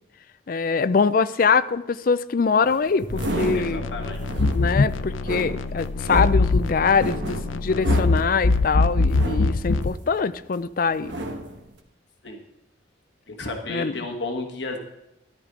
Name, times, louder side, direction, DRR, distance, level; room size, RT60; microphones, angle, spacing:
voice 1, 0.5-3.9 4.5-11.2 13.7-13.9, left 5 dB, 45° left, 14 dB, 0.4 m, -23 dB
sound 1, 2.7-10.5 10.9-11.7, right 1 dB, 65° right, 1.3 m, -32 dB
sound 2, 3.1-9.9, left 3 dB, 85° left, 0.6 m, -23 dB
voice 2, 3.5-4.5 7.7-7.8 12.2-12.4 13.3-14.8, left 2 dB, 60° left, 3 dB, 1.3 m, -33 dB
13.5 x 11.5 x 3.7 m, 0.94 s
head